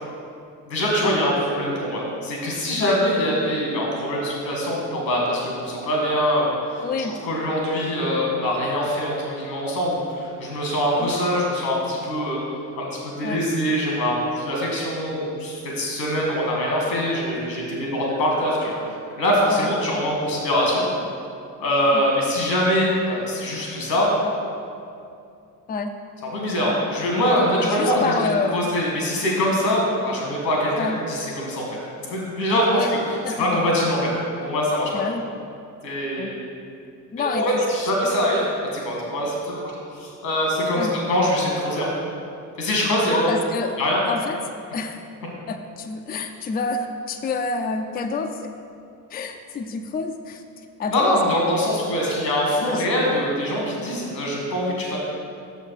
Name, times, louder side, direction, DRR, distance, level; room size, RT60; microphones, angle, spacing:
voice 1, 0.7-6.8 7.2-12.4 12.8-12.9 13.2-18.7 19.2-20.9 21.6-24.1 26.3-28.1 28.5-31.8 32.0-33.0 33.4-34.1 34.4-34.9 35.8-36.4 37.3-38.5 38.7-41.9 42.6-43.3 43.8-44.0 50.9-55.0, equal, 85° left, -2 dB, 1.9 m, -23 dB
voice 2, 6.8-7.1 11.0-11.2 13.2-13.4 19.5-19.7 21.9-22.0 25.7-25.9 27.6-28.7 30.8-31.0 32.7-32.9 33.2-33.6 34.9-35.2 36.2-36.3 37.1-37.4 40.7-40.9 43.1-43.8 44.1-44.4 44.7-45.0 45.5-48.5 49.1-50.4 50.8-51.1 52.6-52.9, left 4 dB, 20° left, 5 dB, 0.5 m, -28 dB
6.7 x 6.5 x 4.7 m, 2.5 s
figure-of-eight pair, 55°, 50 cm